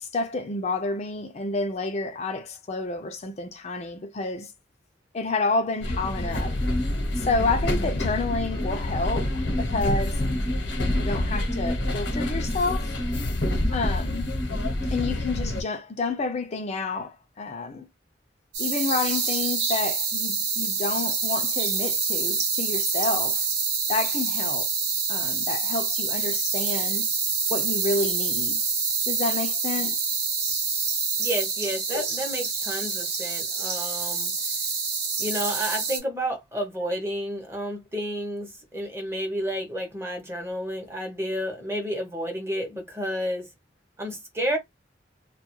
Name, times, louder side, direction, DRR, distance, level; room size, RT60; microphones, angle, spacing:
voice 1, 0.0-4.5 5.1-6.6 7.2-10.2 10.9-12.9 13.7-14.3 14.9-17.9 18.6-23.5 23.9-24.7 25.1-27.1 27.5-28.6 29.1-30.0 31.9-32.1, left 3 dB, 35° left, 0.5 m, -29 dB
sound 1, 5.8-15.6, left 1 dB, 80° left, 0.9 m, -27 dB
sound 2, 18.5-36.0, right 5 dB, 60° right, 0.8 m, -27 dB
voice 2, 31.2-34.3 35.2-43.5 44.0-44.6, equal, 15° right, 0.7 m, -31 dB
2.3 x 2.3 x 2.9 m
head